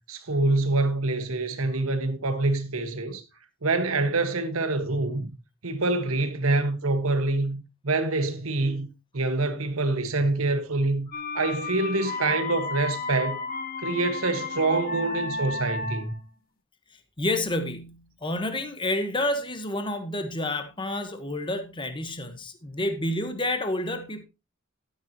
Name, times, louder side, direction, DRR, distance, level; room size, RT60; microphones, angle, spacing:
voice 1, 0.1-3.2 3.6-5.3 5.6-8.9 9.1-11.1 11.3-13.4 13.8-16.1, right 2 dB, 85° right, 1.5 m, -26 dB
sound 1, 11.1-16.2, left 3 dB, 45° left, 1.0 m, -33 dB
voice 2, 17.2-24.2, left 1 dB, 25° left, 1.3 m, -29 dB
12.0 x 9.3 x 2.9 m
head